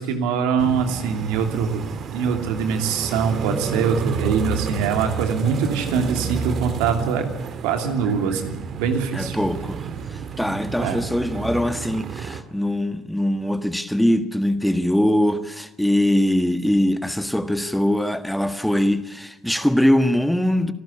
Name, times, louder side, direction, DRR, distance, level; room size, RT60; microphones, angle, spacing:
voice 1, 0.0-1.8 2.1-7.3 7.6-9.4 10.8-11.0, right 6 dB, 80° right, 2.8 m, -23 dB
sound 1, 0.6-12.4, right 6 dB, 55° right, 2.0 m, -30 dB
voice 2, 9.1-20.7, left 1 dB, 5° left, 1.6 m, -22 dB
27.5 x 12.0 x 8.5 m
supercardioid pair, 70°, 0 cm